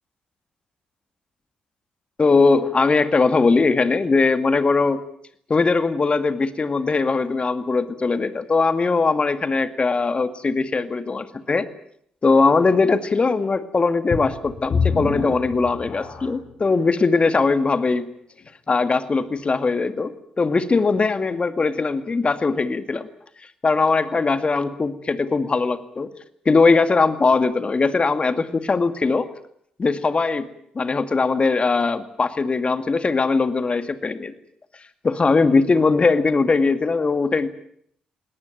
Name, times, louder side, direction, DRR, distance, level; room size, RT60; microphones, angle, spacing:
voice 1, 2.2-5.0 5.5-11.7 12.2-18.1 18.7-23.1 23.6-26.1 26.5-29.3 29.8-30.5 30.7-34.3 35.0-37.5, left 4 dB, 35° left, 10 dB, 2.2 m, -20 dB
sound 1, 14.1-16.5 17.2-17.3 17.9-18.0, left 5 dB, 50° left, 6.7 m, -26 dB
21.0 x 18.5 x 9.2 m, 0.68 s
hypercardioid pair, 45°, 3 cm